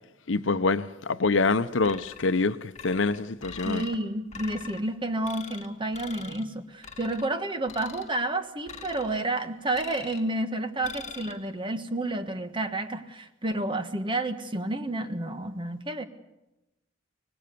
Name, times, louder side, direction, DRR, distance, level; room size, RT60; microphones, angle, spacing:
voice 1, 0.3-3.8, left 3 dB, 70° left, 0.8 m, -25 dB
sound 1, 1.8-2.4 2.7-4.0 4.3-4.8 5.2-5.7 5.9-6.4 6.8-7.3 7.7-8.1 8.7-9.2 9.7-10.3 10.8-11.3, left 5 dB, 35° left, 2.1 m, -42 dB
voice 2, 3.6-16.0, right 2 dB, 25° right, 1.3 m, -30 dB
25.0 x 19.0 x 6.9 m
head